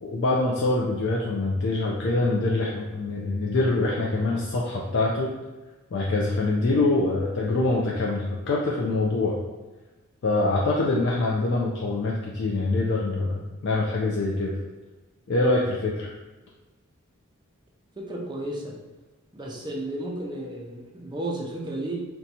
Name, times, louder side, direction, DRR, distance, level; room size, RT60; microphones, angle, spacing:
voice 1, 0.0-5.3 5.9-9.4 10.2-14.5 15.3-16.1, left 2 dB, 55° left, -3 dB, 0.4 m, -24 dB
voice 2, 18.0-18.8 19.3-22.0, right 1 dB, 20° right, -2 dB, 0.5 m, -33 dB
2.6 x 2.2 x 4.1 m, 1.2 s
head